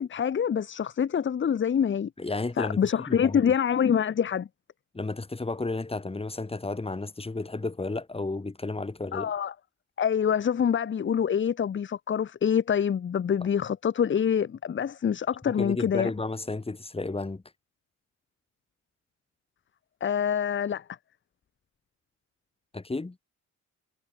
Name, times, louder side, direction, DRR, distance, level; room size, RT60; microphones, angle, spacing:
voice 1, 0.0-2.1 2.6-4.5 9.1-9.5 10.0-16.1 20.0-20.8, left 8 dB, 40° left, 1.1 m, -26 dB
voice 2, 2.2-2.8 3.1-3.4 4.9-9.3 15.5-17.4 22.7-23.2, left 3 dB, 20° left, 6.1 m, -32 dB
cardioid pair, 90°, 30 cm